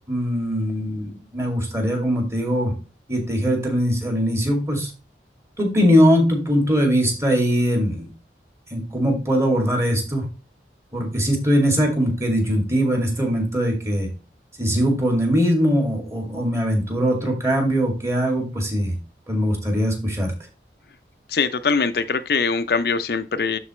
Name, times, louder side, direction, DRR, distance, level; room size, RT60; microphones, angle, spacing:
voice 1, 0.1-2.7 3.1-4.9 5.6-8.1 8.7-10.2 10.9-14.1 14.6-19.0 19.3-20.3, equal, 15° right, 2.3 m, -21 dB
voice 2, 21.3-23.6, left 5 dB, 60° left, 0.5 m, -22 dB
12.0 x 4.0 x 3.1 m
head